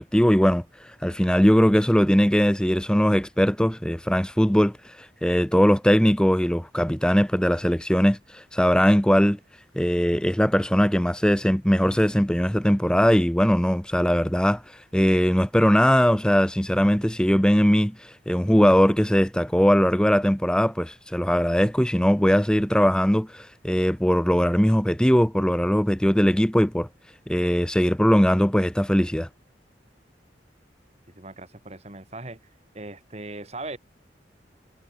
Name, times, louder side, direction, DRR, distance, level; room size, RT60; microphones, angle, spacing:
voice 1, 0.0-9.4 9.8-26.9 27.3-29.3, equal, 5° left, 1.0 m, -20 dB
voice 2, 31.2-32.4 32.7-33.8, right 2 dB, 35° right, 2.2 m, -38 dB
head